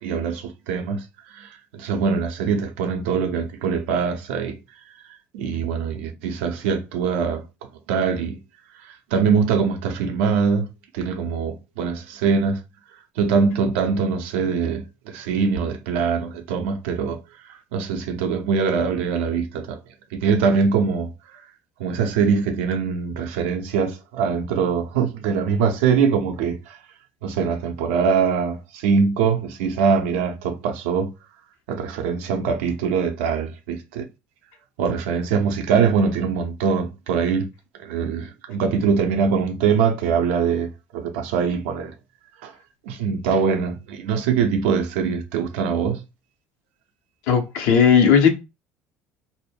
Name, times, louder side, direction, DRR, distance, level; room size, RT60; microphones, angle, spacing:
voice 1, 0.0-1.0 1.3-4.6 5.3-7.4 7.9-8.4 8.8-10.7 10.9-12.6 13.2-17.2 17.4-19.8 20.1-21.1 21.8-26.8 27.2-31.1 31.7-34.0 34.8-37.5 37.8-41.9 42.4-42.5 42.9-46.0, right 6 dB, 75° right, 0.5 m, -23 dB
voice 2, 47.3-48.3, left 7 dB, 70° left, 0.6 m, -16 dB
2.1 x 2.1 x 3.3 m
hypercardioid pair, 60°, 6 cm